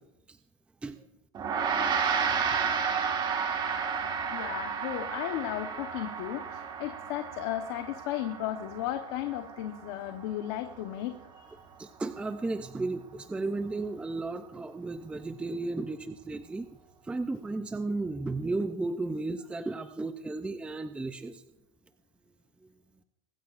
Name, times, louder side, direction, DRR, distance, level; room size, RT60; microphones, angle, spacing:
Gong, 1.3-11.0, right 6 dB, 30° right, 1.7 m, -32 dB
voice 1, 4.3-11.5, left 13 dB, 65° left, 6 dB, 1.1 m, -35 dB
voice 2, 11.8-16.7 17.0-21.4 22.6-22.7, right 3 dB, 5° right, 9 dB, 0.5 m, -34 dB
23.0 x 13.0 x 2.5 m, 0.92 s
supercardioid pair, 130°, 15 cm